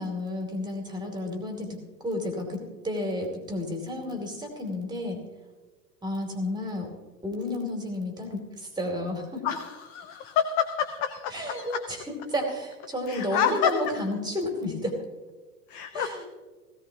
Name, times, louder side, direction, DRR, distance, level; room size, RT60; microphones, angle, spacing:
voice 1, 0.0-1.7 2.0-2.6 2.8-5.2 6.0-6.9 7.2-9.4 11.3-15.0 15.9-16.2, left 1 dB, 10° right, 3 dB, 2.7 m, -31 dB
voice 2, 9.4-11.9 13.1-13.7 15.7-16.2, left 9 dB, 20° left, 10 dB, 0.4 m, -28 dB
17.5 x 16.0 x 2.9 m, 1.4 s
figure-of-eight pair, 90°, 46 cm